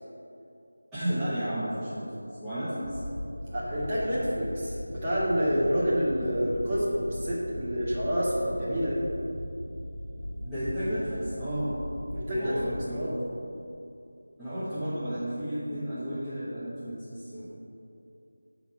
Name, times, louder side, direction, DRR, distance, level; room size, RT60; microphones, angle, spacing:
voice 1, 0.9-3.0 10.3-11.8 12.3-13.2 14.4-17.5, equal, 5° right, -16 dB, 0.9 m, -33 dB
sound 1, 2.8-12.9, equal, 70° left, 1.5 m, -39 dB
voice 2, 3.5-9.0 12.1-12.6 12.9-13.1, equal, 25° right, -8 dB, 1.7 m, -28 dB
7.1 x 4.1 x 5.6 m, 2.7 s
figure-of-eight pair, 170°, 0 cm